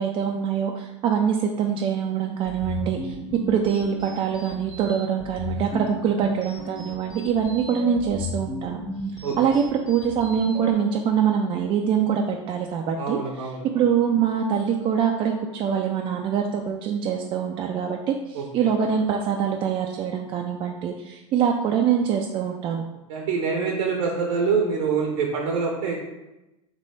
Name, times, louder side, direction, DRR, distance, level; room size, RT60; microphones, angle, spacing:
voice 1, 0.0-3.2 3.5-8.8 9.4-13.2 13.7-22.8, right 7 dB, 30° right, 2 dB, 0.4 m, -24 dB
sound 1, 2.5-10.7, left 1 dB, 20° left, 0.9 m, -35 dB
voice 2, 9.2-9.6 13.0-13.9 18.3-18.7 23.1-26.1, right 5 dB, 65° right, 0 dB, 0.7 m, -26 dB
3.2 x 3.0 x 4.1 m, 0.99 s
hypercardioid pair, 90°, 17 cm